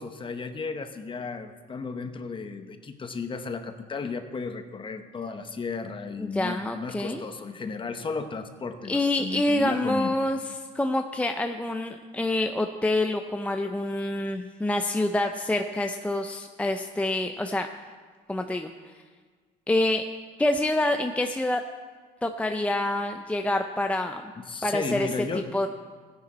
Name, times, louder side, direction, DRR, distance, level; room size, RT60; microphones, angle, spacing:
voice 1, 0.0-10.1 24.4-25.6, left 4 dB, 30° left, 8 dB, 1.0 m, -34 dB
voice 2, 6.2-7.2 8.9-17.7 18.3-18.7 19.7-20.1 20.4-21.6 22.2-24.3 24.6-25.7, left 1 dB, 10° left, 5 dB, 0.6 m, -27 dB
16.0 x 10.5 x 4.2 m, 1.5 s
cardioid pair, 110°, 17 cm